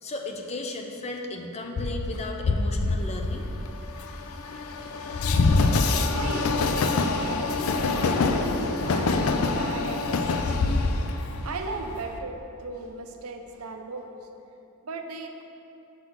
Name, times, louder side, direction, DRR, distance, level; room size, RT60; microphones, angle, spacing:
voice 1, 0.0-3.5, left 2 dB, 30° left, 2 dB, 0.6 m, -35 dB
Train, 1.8-12.2, left 3 dB, 75° left, 0.5 m, -25 dB
voice 2, 6.1-14.3 14.8-15.4, right 3 dB, 85° right, 5 dB, 0.6 m, -38 dB
7.3 x 3.9 x 6.3 m, 2.9 s
head